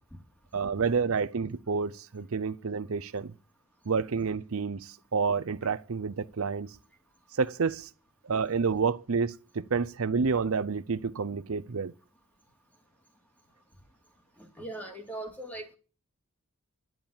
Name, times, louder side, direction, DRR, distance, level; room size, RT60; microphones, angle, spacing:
voice 1, 0.5-3.3 3.9-6.7 7.3-7.9 8.2-11.9, right 5 dB, 70° right, 0.6 m, -29 dB
voice 2, 14.4-15.8, right 1 dB, 5° left, 2.5 m, -40 dB
11.0 x 7.6 x 8.7 m
head